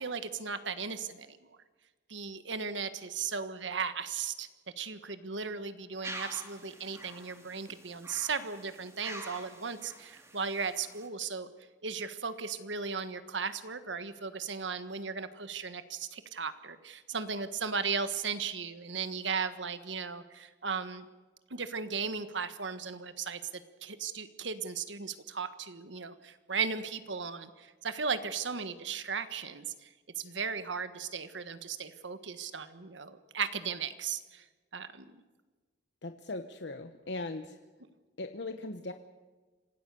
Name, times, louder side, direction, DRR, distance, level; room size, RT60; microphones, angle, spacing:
voice 1, 0.0-1.4 2.1-4.5 4.8-11.5 11.8-21.1 21.5-29.9 30.2-34.4 34.7-35.2, right 5 dB, 75° right, 11 dB, 1.5 m, -36 dB
sound 1, 6.0-11.1, right 2 dB, 15° right, 2.9 m, -46 dB
voice 2, 36.0-37.6 38.2-38.9, left 2 dB, 65° left, 8 dB, 1.0 m, -39 dB
26.5 x 17.5 x 6.9 m, 1.3 s
head